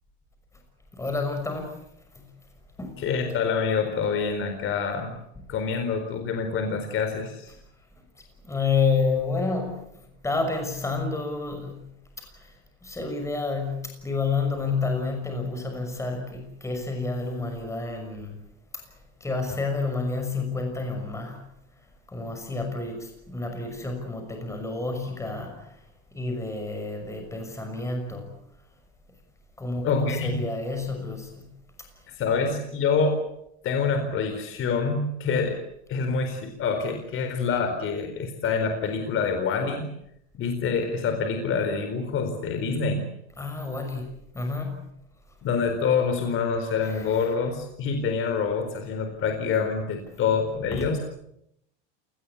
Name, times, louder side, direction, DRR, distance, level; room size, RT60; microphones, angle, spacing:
voice 1, 0.9-1.8 2.1-2.3 2.8-3.1 8.4-11.9 12.2-12.6 12.8-18.4 18.7-18.8 19.2-21.5 22.1-25.8 26.1-28.3 29.6-31.5 32.3-32.5 43.4-44.9 46.8-47.3 50.1-50.2 50.7-51.0, left 4 dB, 10° left, 4 dB, 6.1 m, -30 dB
voice 2, 3.0-5.2 5.5-7.5 29.8-30.4 32.1-33.2 33.6-35.6 35.9-39.9 40.3-43.1 45.4-51.0, left 5 dB, 40° left, 6 dB, 4.4 m, -26 dB
28.5 x 19.5 x 8.4 m, 0.78 s
supercardioid pair, 140°, 33 cm